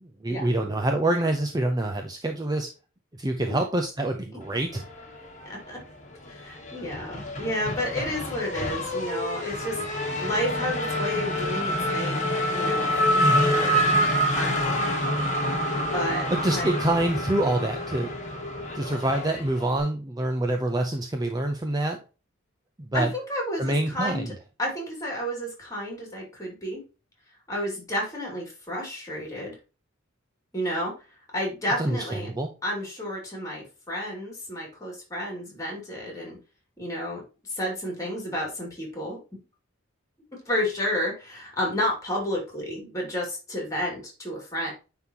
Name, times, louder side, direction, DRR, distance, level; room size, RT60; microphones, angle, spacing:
voice 1, 0.0-2.7 3.2-4.8 13.2-13.5 16.3-18.1 18.7-22.0 22.8-23.1 23.6-24.3 31.8-32.5, right 1 dB, 20° right, 4 dB, 0.5 m, -26 dB
Race car auto racing / Accelerating revving vroom, 4.8-5.8 6.1-19.8, equal, 35° left, 1.5 m, -27 dB
voice 2, 5.4-5.8 6.3-13.8 14.4-14.9 15.7-16.7 22.9-24.2 24.6-26.8 27.5-29.6 30.5-30.9 31.3-32.3 32.6-36.4 36.8-39.4 40.5-44.7, equal, 15° left, -1 dB, 2.7 m, -31 dB
9.5 x 3.8 x 2.9 m, 0.32 s
head